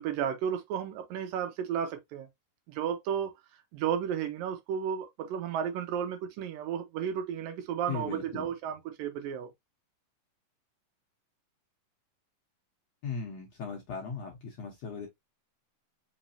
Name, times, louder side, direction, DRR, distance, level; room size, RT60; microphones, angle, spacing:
voice 1, 0.0-2.3 2.7-3.4 3.7-9.5, right 8 dB, 90° right, 2.7 m, -33 dB
voice 2, 7.9-8.5 13.0-15.1, left 5 dB, 65° left, 1.8 m, -38 dB
5.9 x 3.2 x 2.7 m
omnidirectional pair, 3.9 m